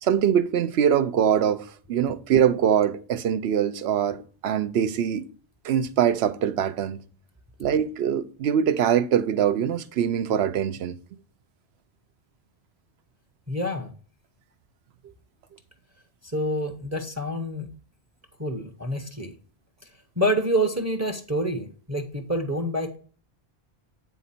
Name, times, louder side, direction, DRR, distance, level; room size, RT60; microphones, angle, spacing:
voice 1, 0.0-4.2 4.4-5.3 5.6-7.0 7.6-11.0, right 9 dB, 90° right, 0.9 m, -23 dB
voice 2, 13.5-13.9 16.2-17.7 18.4-19.3 20.2-23.0, equal, 20° right, 0.7 m, -27 dB
9.2 x 3.9 x 4.2 m
omnidirectional pair, 1.0 m